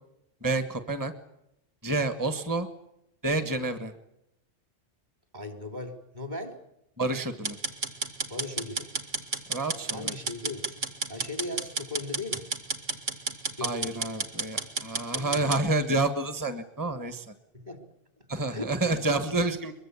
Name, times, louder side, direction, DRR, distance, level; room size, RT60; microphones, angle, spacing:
voice 1, 0.4-1.1 1.8-2.7 3.2-3.9 7.0-7.6 9.5-10.1 13.6-17.3 18.3-19.7, right 2 dB, 15° right, 9 dB, 1.5 m, -29 dB
voice 2, 5.3-6.6 8.3-8.9 9.9-10.7 11.1-12.4 13.6-13.9 15.1-15.5 17.5-17.8 18.5-18.7, left 2 dB, 40° right, 5 dB, 3.9 m, -37 dB
sound 1, 7.4-15.6, right 3 dB, 80° right, 2.7 m, -32 dB
23.5 x 23.0 x 8.4 m, 0.83 s
omnidirectional pair, 1.2 m